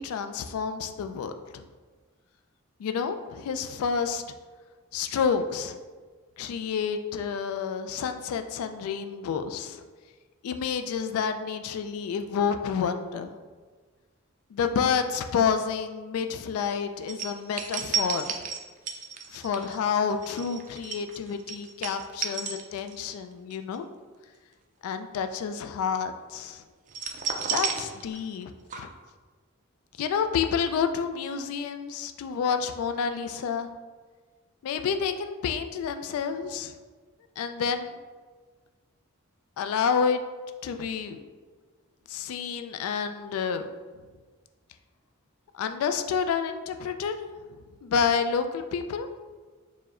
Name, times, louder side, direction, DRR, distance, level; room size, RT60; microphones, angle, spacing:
voice 1, 0.0-1.6 2.8-4.2 4.9-5.8 6.4-9.8 10.4-13.3 14.5-18.5 19.3-23.8 24.8-26.6 27.5-28.9 30.0-33.7 34.6-36.7 37.4-38.0 39.6-40.2 40.6-41.2 42.1-43.7 45.5-47.2 47.8-49.1, left 6 dB, 85° left, 12 dB, 0.3 m, -29 dB
sound 1, 17.1-23.2 23.5-23.8 26.9-28.5 28.7-28.8, right 6 dB, 35° right, 0.3 m, -32 dB
4.7 x 2.1 x 3.6 m, 1.4 s
head